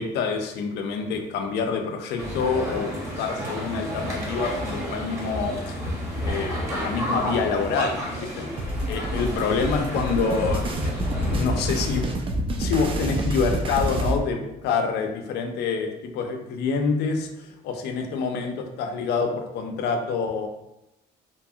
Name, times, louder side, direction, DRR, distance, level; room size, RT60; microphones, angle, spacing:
voice 1, 0.0-5.9 6.2-8.5 8.9-10.9 11.3-12.0 12.6-20.5, left 5 dB, 80° left, 4 dB, 0.5 m, -27 dB
sound 1, 2.2-12.0, equal, 15° right, 0.8 m, -31 dB
sound 2, 8.6-14.2, right 1 dB, 30° right, 0.4 m, -27 dB
2.7 x 2.3 x 2.7 m, 0.88 s
cardioid pair, 110°, 17 cm